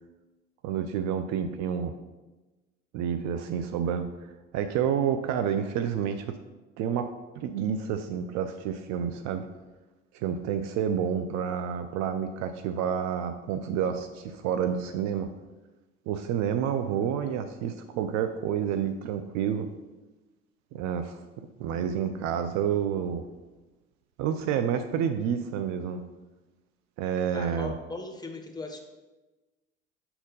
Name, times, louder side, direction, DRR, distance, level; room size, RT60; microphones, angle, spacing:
voice 1, 0.6-1.9 2.9-6.3 6.8-9.4 10.1-15.3 16.1-19.7 20.7-21.2 21.6-23.2 24.2-26.0 27.0-27.7, right 8 dB, 50° right, 8 dB, 0.5 m, -29 dB
voice 2, 27.3-28.8, left 2 dB, 10° left, 3 dB, 1.0 m, -38 dB
5.7 x 4.2 x 5.3 m, 1.1 s
figure-of-eight pair, 65°, 37 cm